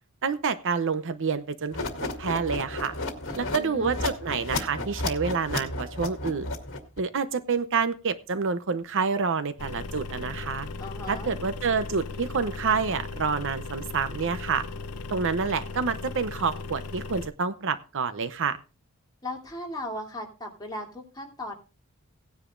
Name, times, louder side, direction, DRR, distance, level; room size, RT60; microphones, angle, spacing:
voice 1, 0.2-1.9 2.2-2.9 3.3-6.5 7.0-10.7 11.1-14.6 15.1-18.6, right 5 dB, 60° right, 12 dB, 0.7 m, -28 dB
sound 1, 1.7-7.0, left 2 dB, 60° left, 2.0 m, -33 dB
voice 2, 3.2-4.1 10.8-11.3 19.2-21.5, left 1 dB, 20° left, -1 dB, 2.9 m, -37 dB
sound 2, 9.6-17.3, left 3 dB, 85° left, 0.7 m, -37 dB
17.5 x 9.9 x 2.5 m, 0.31 s
head